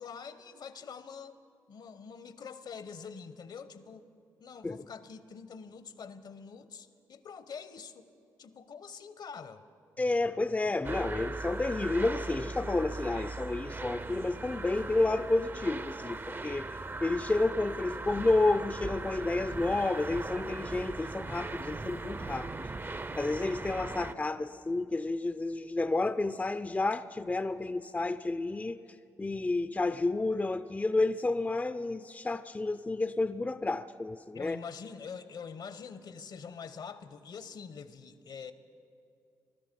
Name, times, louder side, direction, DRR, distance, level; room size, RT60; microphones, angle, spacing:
voice 1, 0.0-1.4 1.7-4.1 4.4-8.1 8.4-9.6 34.3-38.5, left 6 dB, 60° left, 13 dB, 0.9 m, -45 dB
voice 2, 10.0-16.7 17.0-22.7 23.2-28.8 29.2-34.6, left 2 dB, 20° left, 12 dB, 0.5 m, -30 dB
sound 1, 10.8-24.1, right 3 dB, 25° right, 0.6 m, -39 dB
19.5 x 13.0 x 5.2 m, 2.4 s
supercardioid pair, 50°, 8 cm